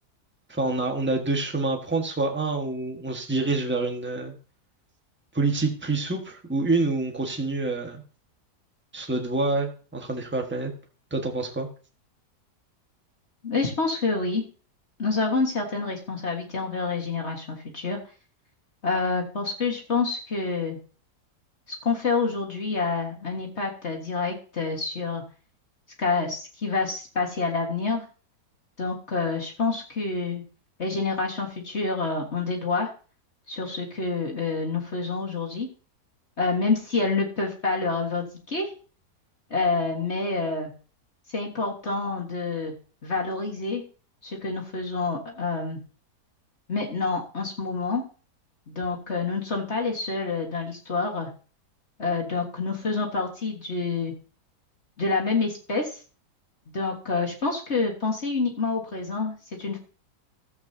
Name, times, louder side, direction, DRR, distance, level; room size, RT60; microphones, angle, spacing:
voice 1, 0.5-4.3 5.3-8.0 8.9-10.7 11.1-11.7, right 3 dB, 5° right, 3 dB, 1.4 m, -27 dB
voice 2, 13.4-14.4 15.0-18.0 18.8-20.8 21.8-25.2 26.0-28.0 28.8-30.4 30.8-32.9 33.5-35.7 36.4-38.7 39.5-40.7 41.3-42.7 43.0-43.8 44.2-45.8 46.7-48.0 48.7-51.3 52.0-54.1 55.0-55.9 56.7-59.8, left 4 dB, 40° left, -1 dB, 1.9 m, -27 dB
15.0 x 8.1 x 2.8 m, 0.37 s
omnidirectional pair, 1.8 m